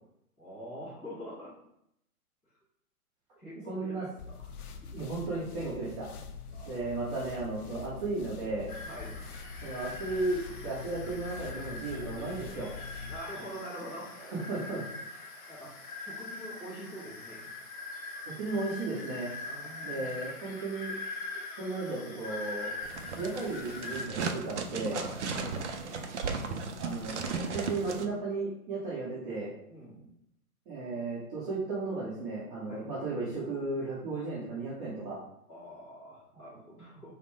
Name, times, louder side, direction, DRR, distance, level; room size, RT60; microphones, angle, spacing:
voice 1, 0.4-1.5 3.4-5.1 6.5-6.9 8.9-9.3 13.1-14.1 15.5-15.7 16.0-17.5 19.4-20.1 24.9-25.8 29.7-30.1 32.7-32.9 35.5-37.1, equal, 5° left, -12 dB, 0.4 m, -45 dB
voice 2, 3.7-4.0 4.9-6.1 6.6-8.7 9.6-12.8 14.2-14.9 18.3-19.3 19.8-20.9 21.6-22.7 23.2-25.0 26.8-29.5 30.7-35.2, right 3 dB, 25° right, -7 dB, 1.0 m, -35 dB
sound 1, 4.2-13.2, left 5 dB, 75° left, 0.6 m, -44 dB
sound 2, 8.7-24.1, left 3 dB, 35° left, 0.7 m, -42 dB
sound 3, 22.8-28.1, right 4 dB, 50° right, 0.5 m, -36 dB
4.9 x 2.1 x 3.2 m, 0.77 s
hypercardioid pair, 135°, 45 cm